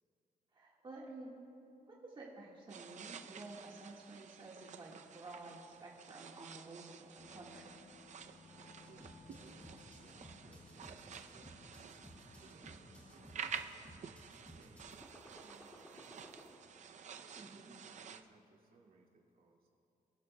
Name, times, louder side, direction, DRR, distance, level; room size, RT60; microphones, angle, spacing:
voice 1, 0.5-1.4 1.9-7.8 17.4-17.7, right 2 dB, 30° right, -3 dB, 1.6 m, -51 dB
sound 1, 2.7-18.2, right 7 dB, 50° right, 0.5 m, -51 dB
sound 2, 7.2-13.3, left 5 dB, 35° left, 0.5 m, -61 dB
voice 2, 8.5-11.8 12.4-14.9 15.2-16.3 17.2-19.7, right 3 dB, 70° right, -2 dB, 2.0 m, -65 dB
sound 3, 8.8-16.5, equal, 10° left, 1.9 m, -57 dB
24.5 x 12.5 x 2.2 m, 2.6 s
wide cardioid pair, 135°, 15 cm